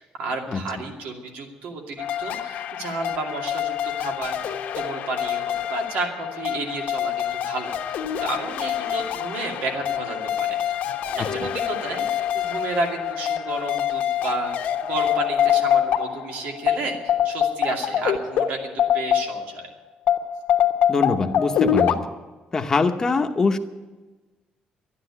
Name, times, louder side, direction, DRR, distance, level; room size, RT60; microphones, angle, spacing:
voice 1, 0.0-10.8 11.0-19.7, right 3 dB, 90° right, 2 dB, 2.5 m, -32 dB
sound 1, 2.0-19.6 20.1-21.9, left 9 dB, 70° left, 1.1 m, -25 dB
voice 2, 20.9-22.0 22.5-23.6, left 4 dB, 20° left, 6 dB, 0.9 m, -23 dB
12.5 x 10.0 x 9.6 m, 1.2 s
cardioid pair, 165°, 3 cm